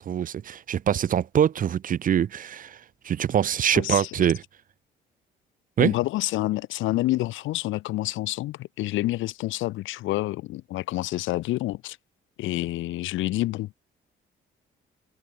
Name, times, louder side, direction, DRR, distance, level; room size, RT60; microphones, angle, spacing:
voice 1, 0.0-4.4 5.8-5.9, right 9 dB, 45° right, 0.5 m, -24 dB
voice 2, 3.7-4.1 5.8-12.0 12.4-13.8, left 17 dB, 80° left, 0.4 m, -28 dB
cardioid pair, 90°, 20 cm